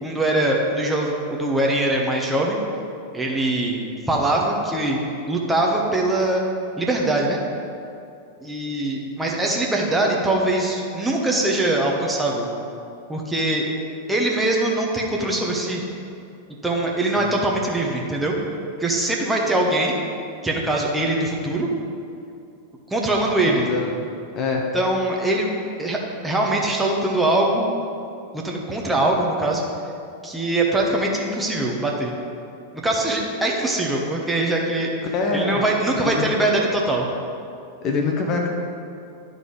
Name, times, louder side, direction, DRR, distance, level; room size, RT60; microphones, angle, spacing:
voice 1, 0.0-2.6 3.1-3.8 4.1-5.0 5.3-6.4 6.8-7.4 8.4-12.5 13.1-13.7 14.1-15.8 16.6-18.3 18.8-20.0 20.4-21.7 22.9-23.6 24.7-25.5 25.8-26.0 26.2-27.7 28.3-29.6 30.2-32.1 32.7-34.9 35.3-37.1, right 2 dB, 5° right, -1 dB, 1.0 m, -22 dB
voice 2, 23.5-24.0 24.3-24.7 35.1-35.6 36.0-36.3 37.8-38.5, left 4 dB, 35° left, 1 dB, 0.9 m, -24 dB
11.0 x 4.0 x 4.9 m, 2.5 s
figure-of-eight pair, 90°, 0 cm